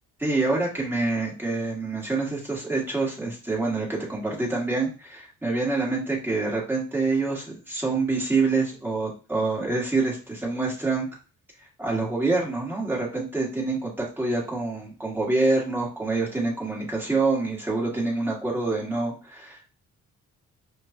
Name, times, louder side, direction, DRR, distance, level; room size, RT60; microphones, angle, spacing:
voice 1, 0.2-11.1 11.8-19.7, right 3 dB, 5° right, -5 dB, 1.8 m, -26 dB
5.0 x 2.4 x 2.8 m, 0.34 s
cardioid pair, 90°, 30 cm